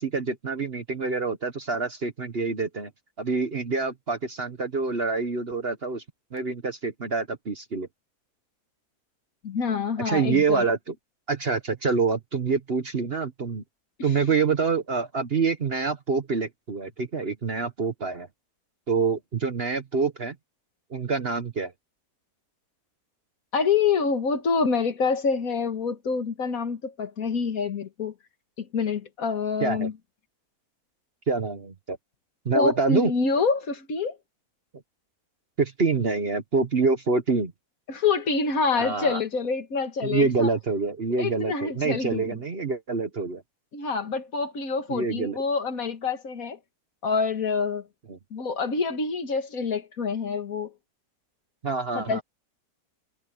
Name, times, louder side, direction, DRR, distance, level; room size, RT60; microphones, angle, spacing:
voice 1, 0.0-2.9 3.2-6.0 6.3-7.9 10.0-10.9 11.3-13.6 14.0-18.3 18.9-20.3 20.9-21.7 29.6-29.9 31.3-32.0 32.4-33.1 35.6-37.5 38.8-39.2 40.0-43.4 44.9-45.4 48.1-48.2 51.6-52.2, right 4 dB, 45° right, 1.3 m, -26 dB
voice 2, 9.4-10.7 23.5-28.1 28.6-29.9 32.5-34.2 37.9-40.5 41.2-42.4 43.7-46.6 47.0-47.8 48.3-50.7 52.0-52.2, left 5 dB, 65° left, 2.1 m, -26 dB
omnidirectional pair, 1.6 m